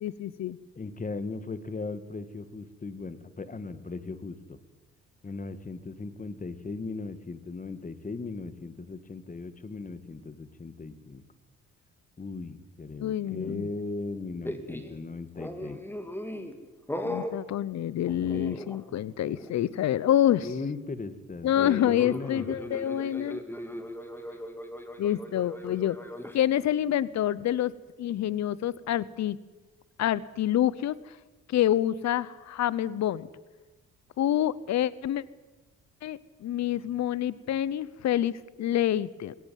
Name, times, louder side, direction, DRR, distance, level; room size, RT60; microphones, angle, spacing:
voice 1, 0.0-0.6 13.0-13.7 17.0-20.5 21.4-23.4 25.0-26.0 26.3-27.7 28.0-29.4 30.0-30.9 31.5-33.3 34.2-35.2 36.0-39.3, left 11 dB, 65° left, 20 dB, 0.9 m, -27 dB
voice 2, 0.8-4.6 5.2-11.2 12.2-15.8 20.4-22.5, left 3 dB, 25° left, 13 dB, 1.9 m, -37 dB
sound 1, 14.4-14.9 15.4-16.6 16.9-17.4 18.1-19.0 19.2-19.5 21.5-26.4, left 1 dB, 5° left, 2.6 m, -38 dB
20.5 x 17.5 x 9.4 m, 1.2 s
cardioid pair, 90°, 30 cm